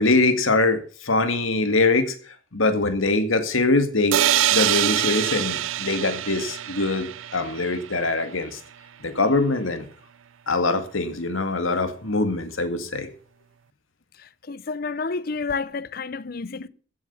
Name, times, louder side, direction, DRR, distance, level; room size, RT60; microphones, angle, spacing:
voice 1, 0.0-2.1 2.5-4.2 4.5-8.6 9.0-9.9 10.5-13.2, left 3 dB, 85° left, 2.0 m, -23 dB
sound 1, 4.1-7.9, right 12 dB, 80° right, 0.5 m, -24 dB
voice 2, 14.2-16.7, left 4 dB, 45° left, 0.6 m, -30 dB
15.5 x 7.4 x 6.9 m
head